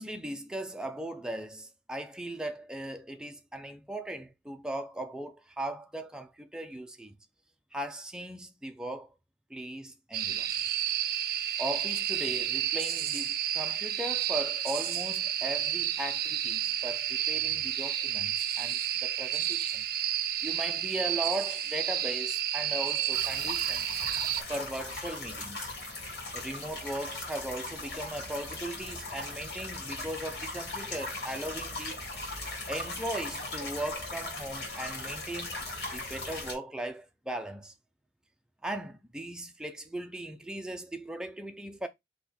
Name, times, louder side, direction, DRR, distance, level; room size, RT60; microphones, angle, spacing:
voice 1, 0.0-7.2 7.7-9.1 9.5-10.5 11.6-19.8 20.4-23.9 24.5-25.7 26.3-32.0 32.7-35.6 35.9-37.7 38.6-41.9, right 1 dB, 5° right, 0.5 m, -38 dB
sound 1, 10.1-24.4, right 10 dB, 55° right, 0.5 m, -31 dB
sound 2, 23.1-36.5, left 2 dB, 65° left, 2.2 m, -39 dB
4.1 x 3.0 x 4.2 m
head